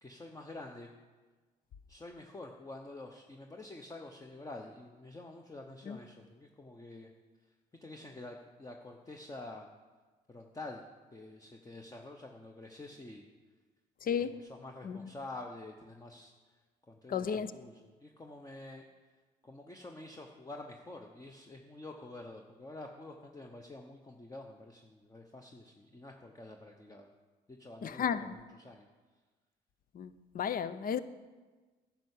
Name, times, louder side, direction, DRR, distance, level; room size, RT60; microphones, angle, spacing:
voice 1, 0.0-0.9 1.9-7.1 7.8-9.7 10.3-10.8 11.1-13.3 14.2-16.3 16.9-18.8 19.4-27.1 27.5-28.9, left 2 dB, 20° left, 1.0 m, -48 dB
voice 2, 14.0-14.4 14.8-15.1 17.1-17.5 27.8-28.4 29.9-31.0, left 7 dB, 50° left, 0.7 m, -34 dB
10.5 x 5.7 x 8.3 m
supercardioid pair, 70°, 18 cm